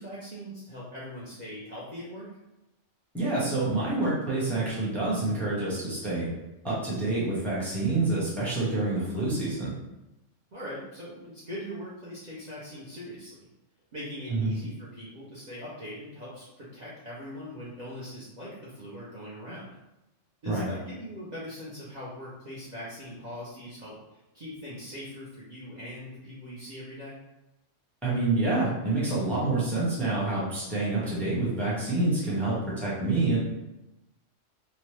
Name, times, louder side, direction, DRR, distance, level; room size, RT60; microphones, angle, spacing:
voice 1, 0.0-2.3 10.5-13.5 13.9-19.8 20.4-27.2, equal, 45° right, -8 dB, 0.6 m, -41 dB
voice 2, 3.1-6.3 6.6-9.7 14.3-14.6 20.5-20.7 28.0-33.4, right 2 dB, ahead, -8 dB, 0.6 m, -27 dB
2.8 x 2.1 x 3.1 m, 0.94 s
omnidirectional pair, 1.3 m